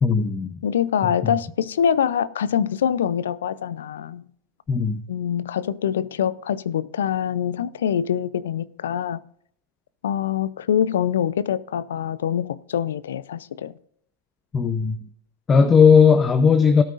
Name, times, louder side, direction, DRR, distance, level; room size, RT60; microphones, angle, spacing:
voice 1, 0.0-0.5 1.2-1.3 4.7-5.0 14.5-15.0 15.5-16.8, left 6 dB, 20° left, 0.7 m, -16 dB
voice 2, 0.6-4.3 5.1-9.2 10.0-13.7, left 9 dB, 80° left, 0.5 m, -24 dB
17.5 x 9.1 x 2.5 m
hypercardioid pair, 110°, 0 cm